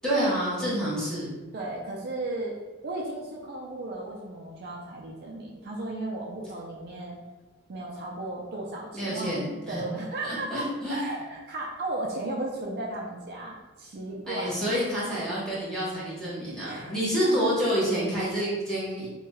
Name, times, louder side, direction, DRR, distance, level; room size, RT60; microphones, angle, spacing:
voice 1, 0.0-1.4 8.9-9.8 10.2-11.0 14.3-19.1, equal, 5° left, -8 dB, 0.8 m, -28 dB
voice 2, 1.5-2.5 2.8-7.2 7.7-14.8 16.6-16.9 17.2-17.5, right 2 dB, 50° right, -2 dB, 0.4 m, -35 dB
2.6 x 2.2 x 3.1 m, 1.2 s
head